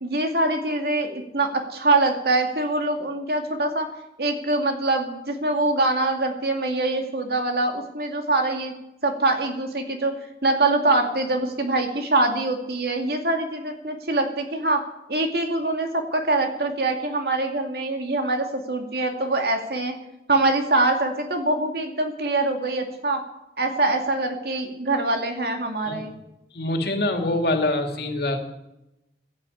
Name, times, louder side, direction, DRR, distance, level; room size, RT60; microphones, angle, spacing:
voice 1, 0.0-3.9 4.2-8.7 9.0-10.1 10.4-14.8 15.1-19.9 20.3-23.2 23.6-26.1, right 2 dB, 60° right, 4 dB, 2.4 m, -24 dB
voice 2, 26.5-28.4, left 2 dB, 60° left, 4 dB, 2.5 m, -25 dB
14.5 x 11.0 x 8.6 m, 0.90 s
head